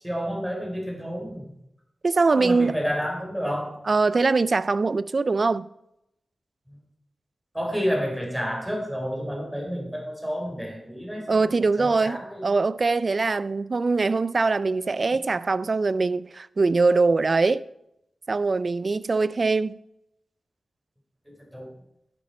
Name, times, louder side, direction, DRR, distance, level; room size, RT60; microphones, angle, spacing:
voice 1, 0.0-1.5 2.4-3.8 6.7-6.8 7.5-11.4 11.8-12.5 21.5-21.7, equal, 5° right, 3.8 m, -30 dB
voice 2, 2.0-2.8 3.9-5.7 11.3-17.6 18.3-19.8, right 3 dB, 50° right, 0.4 m, -22 dB
11.0 x 8.3 x 4.4 m
cardioid pair, 65°, 0 cm